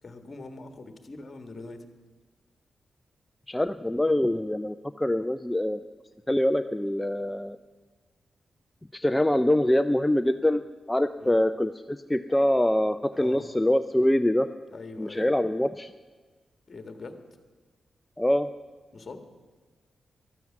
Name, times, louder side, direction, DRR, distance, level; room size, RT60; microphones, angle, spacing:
voice 1, 0.0-1.9 11.2-11.4 13.1-13.5 14.7-15.3 16.7-17.2 18.9-19.2, left 3 dB, 35° left, 7 dB, 1.6 m, -42 dB
voice 2, 3.5-5.9 6.3-7.6 8.9-10.6 10.9-14.5 15.0-15.9 18.2-18.5, left 1 dB, 10° left, 8 dB, 0.4 m, -24 dB
14.0 x 12.0 x 7.4 m, 1.4 s
wide cardioid pair, 130°, 0 cm